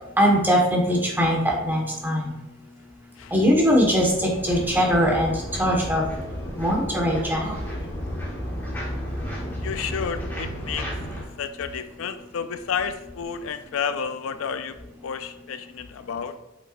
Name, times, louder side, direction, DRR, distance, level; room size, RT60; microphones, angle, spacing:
voice 1, 0.2-2.3 3.3-5.3 5.6-6.1 6.6-7.6, equal, 10° right, -1 dB, 1.5 m, -21 dB
sound 1, 3.2-11.2, equal, 10° left, 1.6 m, -33 dB
voice 2, 9.6-14.8 15.0-16.4, left 6 dB, 75° left, 10 dB, 0.4 m, -31 dB
8.3 x 5.9 x 2.6 m, 0.98 s
head